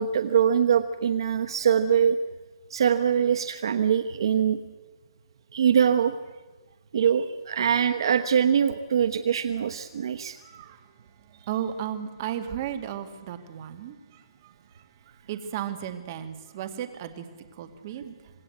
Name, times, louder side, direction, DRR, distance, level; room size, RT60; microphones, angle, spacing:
voice 1, 0.0-2.2 2.7-4.6 5.5-6.1 6.9-10.4, right 8 dB, 65° right, 8 dB, 1.1 m, -23 dB
voice 2, 10.4-10.8 11.5-14.8 15.3-17.3 17.6-18.2, right 10 dB, 35° right, 7 dB, 2.2 m, -35 dB
26.5 x 19.5 x 8.1 m, 1.2 s
hypercardioid pair, 165°, 3 cm